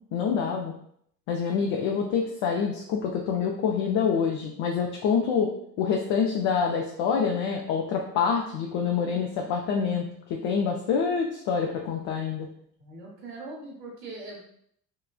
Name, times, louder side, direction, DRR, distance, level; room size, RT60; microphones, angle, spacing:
voice 1, 0.1-0.7 1.3-5.5 5.8-12.5, left 6 dB, 60° left, 1 dB, 0.6 m, -26 dB
voice 2, 12.8-14.4, right 2 dB, 90° right, -5 dB, 1.1 m, -41 dB
2.9 x 2.4 x 2.3 m, 0.67 s
hypercardioid pair, 65°, 47 cm